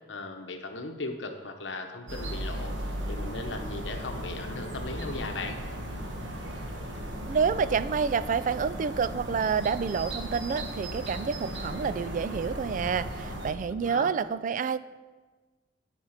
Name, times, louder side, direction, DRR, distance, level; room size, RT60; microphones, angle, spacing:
voice 1, 0.1-2.7 3.1-5.6 13.7-14.1, left 3 dB, 75° left, 5 dB, 0.9 m, -37 dB
sound 1, 2.1-13.5, right 1 dB, 90° right, 1.3 m, -36 dB
voice 2, 7.3-14.8, right 6 dB, 45° right, 14 dB, 0.3 m, -28 dB
8.9 x 5.1 x 6.5 m, 1.3 s
head